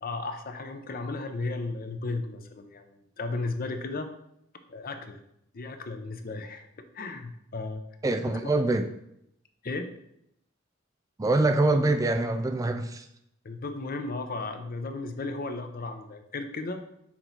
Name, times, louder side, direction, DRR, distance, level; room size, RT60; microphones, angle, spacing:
voice 1, 0.0-4.1 4.7-5.2 5.5-6.7 6.9-7.8 8.4-8.5 9.6-9.9 13.4-16.8, left 3 dB, 50° left, 7 dB, 0.7 m, -35 dB
voice 2, 8.0-8.9 11.2-13.1, right 2 dB, 20° right, 8 dB, 0.3 m, -24 dB
5.9 x 4.0 x 4.5 m, 0.76 s
head